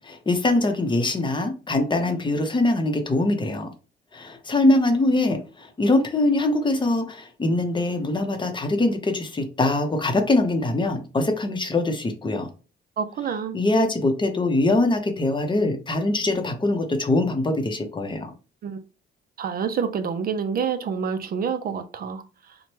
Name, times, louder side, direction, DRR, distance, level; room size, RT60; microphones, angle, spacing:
voice 1, 0.0-3.7 4.1-12.5 13.5-18.3, left 2 dB, 25° left, 0.7 m, -23 dB
voice 2, 13.0-13.6 18.6-18.8 19.4-22.2, right 6 dB, 50° right, 0.4 m, -27 dB
3.0 x 2.1 x 2.9 m
cardioid pair, 90°, 20 cm